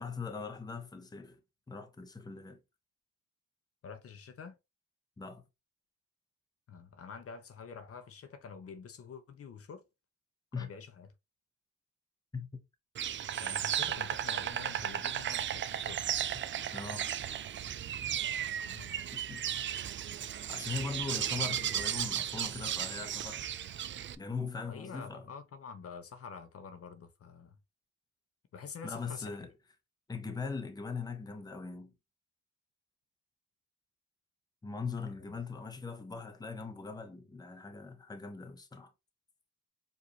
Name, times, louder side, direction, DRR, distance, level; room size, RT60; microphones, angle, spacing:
voice 1, 0.0-1.4 1.7-2.6 5.2-5.4 10.5-10.7 12.3-12.5 16.7-17.1 19.1-19.4 20.5-23.5 24.2-25.2 28.8-29.5 30.1-31.9 34.6-38.9, left 4 dB, 15° left, 0.8 m, -40 dB
voice 2, 3.8-4.6 6.7-9.8 10.5-11.1 13.4-16.0 18.6-18.9 24.5-27.6 28.5-29.5 35.3-35.4, left 6 dB, 50° left, 0.8 m, -47 dB
Insect, 12.9-24.1, right 10 dB, 40° right, 0.4 m, -35 dB
4.8 x 2.7 x 3.1 m
cardioid pair, 90°, 30 cm